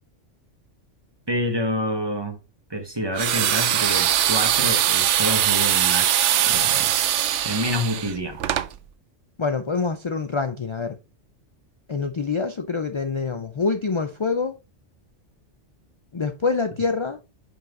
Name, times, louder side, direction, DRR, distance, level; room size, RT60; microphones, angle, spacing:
voice 1, 1.3-2.4 2.7-6.9 7.4-8.4, equal, 20° right, 1.2 m, -28 dB
sound 1, 3.2-8.7, right 11 dB, 75° right, 0.9 m, -21 dB
voice 2, 9.4-11.0 11.9-14.6 16.1-17.2, left 4 dB, 45° left, 0.3 m, -25 dB
5.5 x 5.4 x 3.7 m
omnidirectional pair, 1.3 m